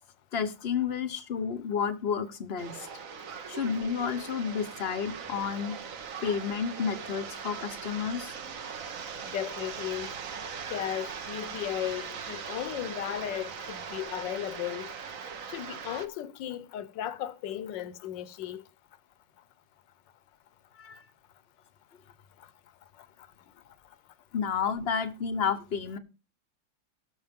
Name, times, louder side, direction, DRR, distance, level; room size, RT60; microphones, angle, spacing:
voice 1, 0.3-2.9 3.5-5.8 6.2-8.3 20.8-21.0 24.3-26.0, left 6 dB, 50° left, 0.8 m, -31 dB
sound 1, 2.6-16.1, right 6 dB, 50° right, 1.2 m, -40 dB
voice 2, 9.2-10.1 10.7-14.9 15.5-18.6, left 11 dB, 70° left, 1.4 m, -35 dB
18.0 x 6.5 x 3.6 m
omnidirectional pair, 2.1 m